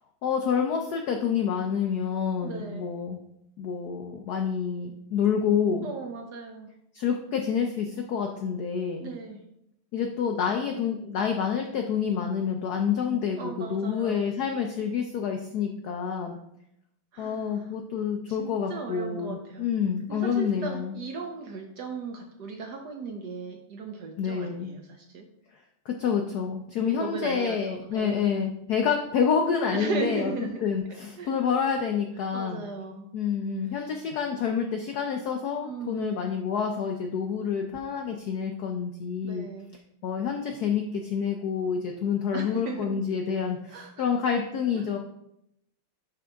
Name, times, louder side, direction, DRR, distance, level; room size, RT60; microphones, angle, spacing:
voice 1, 0.2-3.2 3.6-5.9 6.9-9.1 9.9-16.4 17.2-21.0 24.2-24.8 25.9-30.3 30.6-32.6 33.1-39.5 40.0-45.0, left 7 dB, 80° left, 4 dB, 0.8 m, -28 dB
voice 2, 2.4-2.9 5.8-6.7 9.0-9.4 13.4-14.2 17.1-17.7 18.3-19.7 20.1-25.3 26.9-28.4 29.7-30.6 31.2-31.3 32.3-33.1 33.7-33.9 35.6-36.1 39.2-39.7 42.3-43.0 43.7-44.0 44.7-44.8, right 4 dB, 70° right, 3 dB, 1.0 m, -37 dB
9.9 x 3.9 x 3.4 m, 0.78 s
omnidirectional pair, 2.3 m